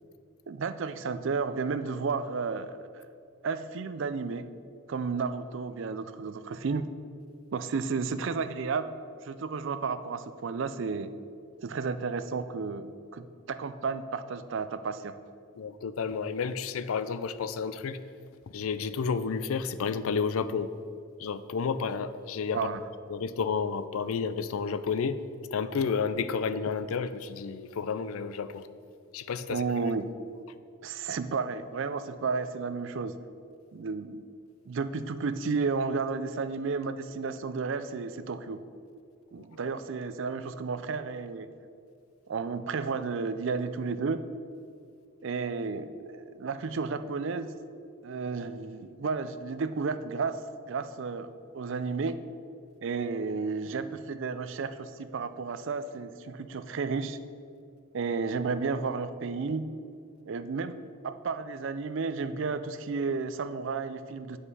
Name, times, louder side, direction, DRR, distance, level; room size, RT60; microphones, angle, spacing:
voice 1, 0.5-3.1 3.4-4.5 4.9-6.9 7.5-8.9 9.2-11.1 11.6-12.9 13.1-15.2 22.5-22.8 29.5-30.1 30.8-33.2 33.7-34.2 34.7-38.6 39.3-41.5 42.3-44.2 45.2-47.5 48.0-50.4 50.7-52.1 52.8-57.2 57.9-59.7 60.3-64.4, right 4 dB, 55° right, 11 dB, 0.4 m, -32 dB
voice 2, 15.6-18.0 18.5-20.7 21.2-22.6 23.1-25.2 25.5-28.7 29.1-29.6 39.4-39.7, left 5 dB, 70° left, 13 dB, 0.4 m, -31 dB
8.1 x 5.7 x 5.4 m, 2.4 s
head